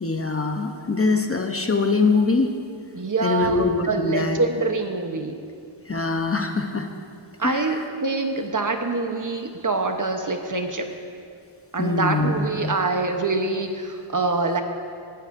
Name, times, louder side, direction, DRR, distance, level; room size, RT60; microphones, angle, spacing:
voice 1, 0.0-2.5 3.2-4.4 5.9-6.9 7.4-7.8 11.8-12.7, left 3 dB, 30° left, 5 dB, 0.8 m, -23 dB
voice 2, 2.9-5.4 7.4-10.9 11.7-14.6, right 3 dB, 40° right, 5 dB, 1.0 m, -25 dB
18.0 x 12.5 x 2.6 m, 2.3 s
wide cardioid pair, 75°, 48 cm